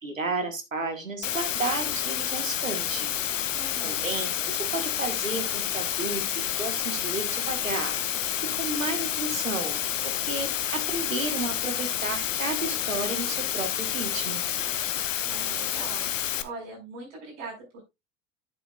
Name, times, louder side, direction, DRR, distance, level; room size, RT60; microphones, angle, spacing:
voice 1, 0.0-3.2 3.8-14.4, right 3 dB, 85° right, 7 dB, 1.6 m, -33 dB
Water, 1.2-16.4, left 10 dB, 75° left, 0.8 m, -29 dB
voice 2, 3.5-4.0 15.3-16.1 16.4-17.8, right 3 dB, 60° right, -3 dB, 5.3 m, -41 dB
10.5 x 7.9 x 2.4 m, 0.22 s
figure-of-eight pair, 65°, 38 cm